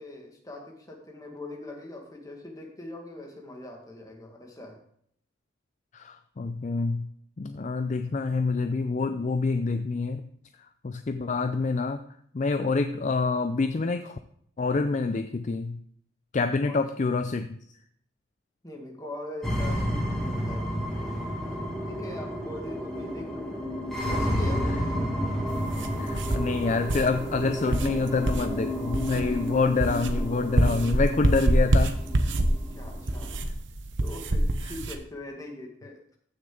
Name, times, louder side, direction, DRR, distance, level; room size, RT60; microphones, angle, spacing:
voice 1, 0.0-4.8 16.6-16.8 18.6-23.6 24.1-25.0 32.8-33.4 34.0-36.2, left 2 dB, 20° left, 1 dB, 1.9 m, -41 dB
voice 2, 5.9-7.1 7.4-10.2 10.8-12.0 12.3-14.2 14.6-15.8 16.3-17.6 26.0-32.0 34.6-34.7, left 4 dB, 40° left, 9 dB, 0.4 m, -27 dB
sound 1, 19.4-33.4, equal, ahead, 2.1 m, -31 dB
sound 2, 25.5-35.0, right 1 dB, 70° right, 0.9 m, -27 dB
14.5 x 6.4 x 3.8 m, 0.68 s
head